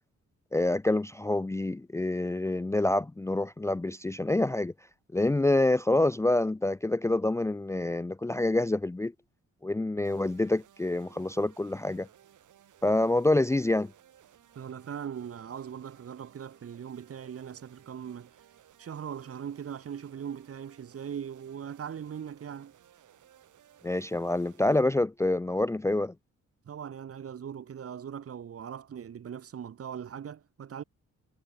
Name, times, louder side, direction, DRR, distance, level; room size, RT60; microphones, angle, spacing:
voice 1, 0.5-4.7 5.1-9.1 9.6-12.1 12.8-13.9 23.8-26.1, left 2 dB, 10° left, 0.5 m, -27 dB
sound 1, 10.0-24.8, right 10 dB, 80° right, 7.1 m, -59 dB
voice 2, 14.6-18.3 18.8-22.7 26.7-30.8, right 8 dB, 50° right, 1.7 m, -40 dB
wide cardioid pair, 140°, 30 cm